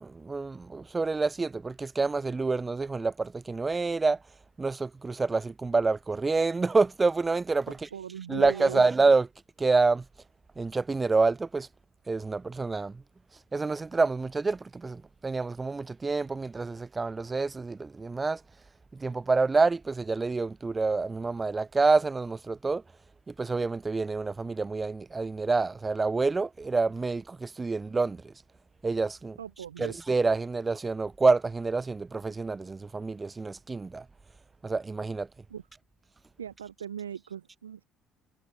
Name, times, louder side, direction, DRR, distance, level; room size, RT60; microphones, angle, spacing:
voice 1, 0.0-4.2 4.6-7.8 8.3-9.3 9.6-10.0 10.6-11.7 12.1-12.9 13.5-18.4 19.0-22.8 23.4-28.2 28.8-29.4 29.8-34.0 34.6-35.3, right 3 dB, 25° right, 0.5 m, -27 dB
voice 2, 7.9-8.8 29.4-30.0 35.5-35.6 36.4-37.8, right 8 dB, 85° right, 0.7 m, -39 dB
figure-of-eight pair, 50°, 0 cm